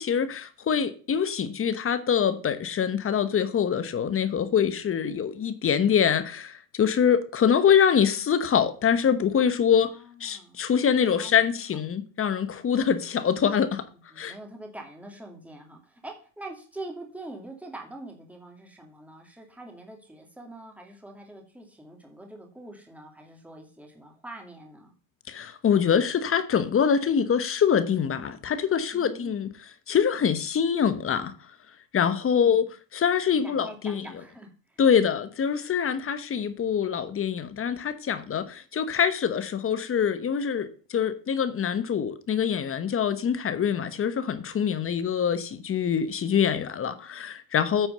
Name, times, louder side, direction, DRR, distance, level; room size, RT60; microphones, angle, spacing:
voice 1, 0.0-9.9 10.2-13.8 14.2-14.3 25.3-29.5 29.9-31.3 31.9-32.6 32.9-34.0 34.8-47.9, left 7 dB, 30° left, 1.0 m, -24 dB
voice 2, 9.7-10.6 11.0-11.4 14.1-24.9 28.9-29.5 32.4-32.7 33.4-34.8 47.7-47.9, right 2 dB, 5° right, 2.2 m, -44 dB
9.1 x 4.5 x 6.6 m
supercardioid pair, 110°, 47 cm